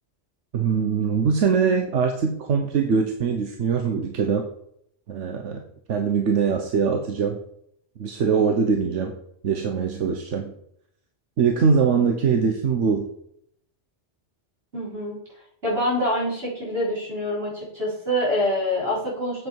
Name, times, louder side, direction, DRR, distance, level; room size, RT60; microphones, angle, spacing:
voice 1, 0.5-4.5 5.1-5.6 5.9-7.4 8.0-9.1 9.4-10.5 11.4-13.1, right 6 dB, 85° right, 4 dB, 1.2 m, -22 dB
voice 2, 14.7-15.2 15.6-19.5, left 1 dB, 55° right, -5 dB, 4.6 m, -25 dB
7.8 x 7.6 x 4.6 m, 0.71 s
omnidirectional pair, 1.2 m